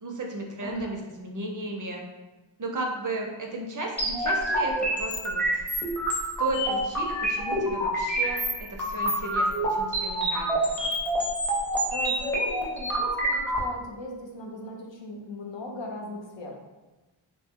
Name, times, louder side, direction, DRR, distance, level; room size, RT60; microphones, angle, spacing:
voice 1, 0.0-2.0 2.6-5.6 6.4-8.4 8.7-10.9, right 2 dB, 40° right, 0 dB, 0.5 m, -34 dB
voice 2, 0.6-0.9 11.9-16.5, left 1 dB, 60° left, 0 dB, 0.7 m, -37 dB
sound 1, 4.0-13.6, right 1 dB, 5° left, 0.6 m, -27 dB
2.9 x 2.1 x 3.5 m, 1.1 s
cardioid pair, 75°, 49 cm